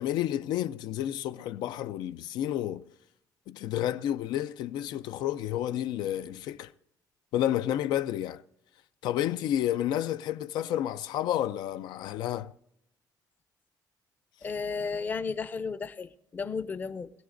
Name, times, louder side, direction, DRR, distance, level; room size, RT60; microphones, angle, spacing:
voice 1, 0.0-2.9 3.5-6.7 7.3-8.4 9.0-12.5, left 11 dB, 85° left, 0.5 m, -30 dB
voice 2, 14.4-17.1, left 5 dB, 25° left, 0.5 m, -33 dB
22.0 x 16.5 x 2.6 m
cardioid pair, 160°, 7 cm